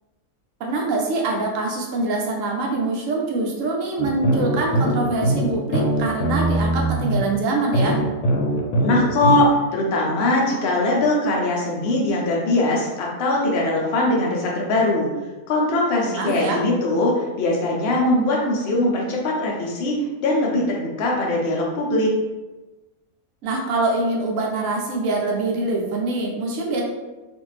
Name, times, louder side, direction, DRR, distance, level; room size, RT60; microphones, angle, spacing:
voice 1, 0.6-8.0 16.0-16.6 23.4-26.8, right 2 dB, 70° right, -1 dB, 0.9 m, -24 dB
sound 1, 4.0-7.2 7.7-9.4, right 1 dB, 90° left, 1.1 m, -21 dB
voice 2, 8.8-9.5 9.7-15.1 15.5-22.1, left 2 dB, 55° left, -2 dB, 0.7 m, -21 dB
2.5 x 2.5 x 3.1 m, 1.1 s
omnidirectional pair, 1.6 m